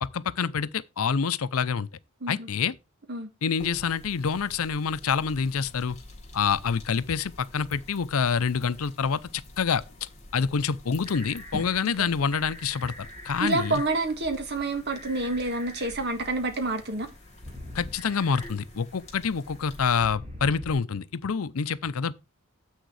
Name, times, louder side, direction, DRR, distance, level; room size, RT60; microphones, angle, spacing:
voice 1, 0.0-1.9 2.3-2.7 3.4-6.0 6.3-9.2 9.6-9.8 10.3-13.8 17.7-22.1, left 6 dB, 80° left, 0.6 m, -27 dB
sound 1, 3.6-20.0, left 1 dB, 35° left, 3.1 m, -47 dB
sound 2, 11.0-20.7, equal, 35° right, 2.5 m, -44 dB
voice 2, 13.4-17.1, right 2 dB, 50° right, 1.8 m, -28 dB
7.9 x 6.5 x 4.8 m
head